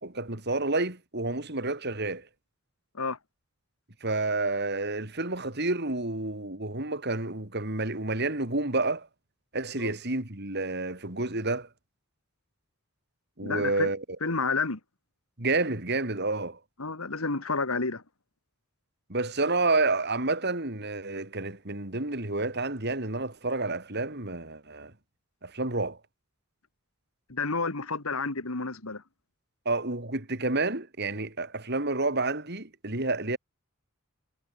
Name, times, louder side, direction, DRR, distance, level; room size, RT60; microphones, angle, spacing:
voice 1, 0.0-2.3 4.0-9.1 9.5-11.7 13.4-14.0 15.4-16.6 19.1-24.9 25.4-26.0 29.7-33.4, right 2 dB, 50° right, 3.5 m, -29 dB
voice 2, 13.4-13.9 14.2-14.8 16.8-18.0 27.3-29.0, left 4 dB, 80° left, 2.2 m, -30 dB
head